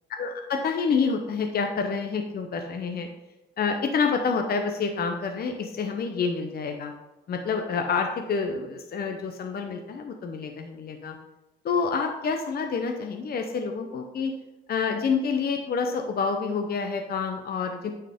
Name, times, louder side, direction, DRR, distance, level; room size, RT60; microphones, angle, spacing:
voice 1, 0.2-3.1 3.6-6.9 7.3-11.1 11.6-14.3 14.7-17.9, left 5 dB, 50° left, 4 dB, 0.8 m, -28 dB
9.0 x 4.6 x 3.7 m, 0.99 s
cardioid pair, 90°, 20 cm